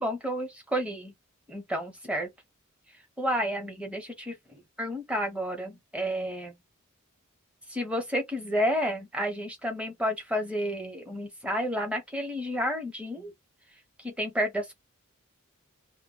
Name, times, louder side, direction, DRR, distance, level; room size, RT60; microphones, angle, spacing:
voice 1, 0.0-1.1 1.5-2.3 3.2-4.3 4.8-6.5 7.7-13.3 14.0-14.7, equal, 5° right, 0.8 m, -30 dB
2.1 x 2.1 x 3.6 m
head